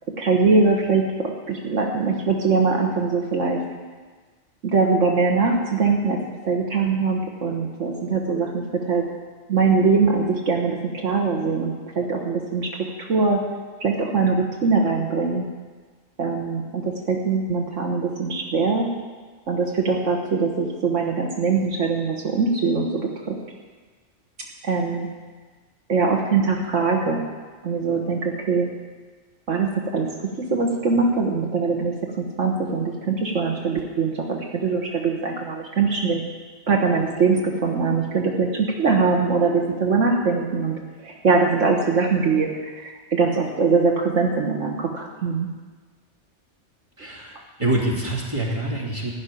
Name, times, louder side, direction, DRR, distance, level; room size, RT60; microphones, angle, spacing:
voice 1, 0.2-3.6 4.6-9.1 9.5-12.7 13.0-13.4 13.8-15.5 16.2-18.9 19.5-23.4 24.6-25.1 25.9-27.2 27.6-28.7 29.5-36.2 36.7-45.5, right 4 dB, 80° right, 0 dB, 1.7 m, -22 dB
voice 2, 47.0-47.3 47.6-49.1, right 1 dB, 25° right, -4 dB, 2.9 m, -25 dB
15.0 x 6.5 x 9.9 m, 1.4 s
omnidirectional pair, 1.3 m